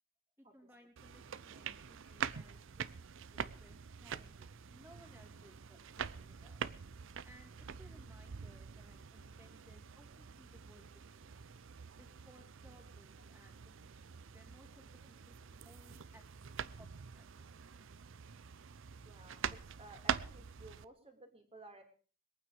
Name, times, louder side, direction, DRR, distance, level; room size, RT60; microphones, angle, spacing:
voice 1, 0.4-6.6 7.2-10.9 11.9-16.2 16.8-16.9 17.1-17.8, equal, 10° right, 1 dB, 3.0 m, -63 dB
sound 1, 1.0-20.8, right 7 dB, 65° right, 0.6 m, -45 dB
voice 2, 19.0-21.8, right 2 dB, 30° right, 4 dB, 3.0 m, -56 dB
22.0 x 9.2 x 5.0 m, 0.40 s
head